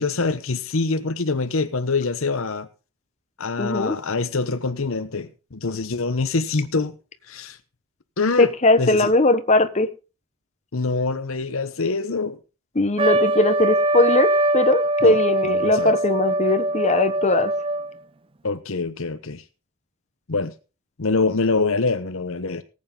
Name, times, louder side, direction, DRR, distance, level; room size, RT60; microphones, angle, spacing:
voice 1, 0.0-2.7 3.4-6.9 7.3-7.6 8.2-8.5 8.8-9.1 10.7-12.4 15.0-15.2 15.4-15.9 18.4-19.4 20.3-20.5 21.0-22.6, left 3 dB, 65° left, 0.9 m, -25 dB
voice 2, 3.6-4.0 8.4-9.9 12.7-17.5, left 2 dB, 30° left, 1.2 m, -20 dB
Trumpet, 13.0-18.0, right 1 dB, 25° right, 0.5 m, -22 dB
18.5 x 8.5 x 3.7 m
head